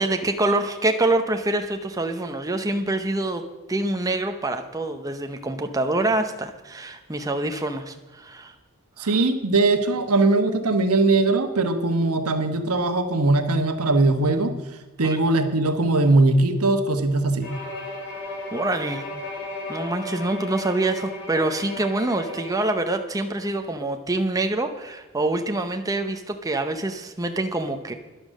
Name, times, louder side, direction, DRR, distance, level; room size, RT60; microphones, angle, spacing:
voice 1, 0.0-3.4 3.7-8.5 9.0-9.2 15.0-15.2 18.5-19.1 19.7-27.9, right 2 dB, 15° right, 6 dB, 0.7 m, -26 dB
voice 2, 9.0-14.5 15.0-17.5, right 2 dB, 85° right, 8 dB, 1.2 m, -20 dB
Bowed string instrument, 17.4-22.8, left 2 dB, 50° left, 5.1 m, -35 dB
11.5 x 10.5 x 6.4 m, 1.1 s
head